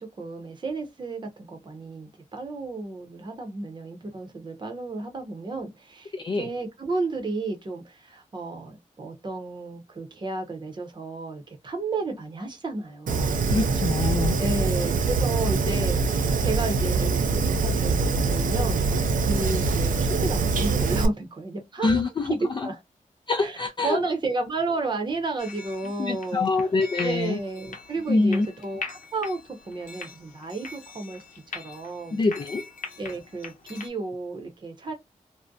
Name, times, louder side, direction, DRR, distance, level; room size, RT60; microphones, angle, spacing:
voice 1, 0.0-13.4 14.4-16.0 16.4-18.8 19.2-22.0 22.3-22.8 23.4-23.6 23.8-26.5 27.0-29.4 29.7-32.2 33.0-34.9, right 3 dB, 35° right, 0.7 m, -32 dB
voice 2, 6.1-6.5 13.5-14.4 21.8-22.7 23.3-24.0 26.0-27.4 28.1-28.5 32.1-32.6, left 3 dB, 35° left, 0.3 m, -25 dB
Fire, 13.1-21.1, right 4 dB, 80° right, 0.4 m, -24 dB
sound 1, 25.4-33.9, left 4 dB, 75° left, 0.8 m, -41 dB
2.6 x 2.1 x 2.3 m
wide cardioid pair, 135°, 14 cm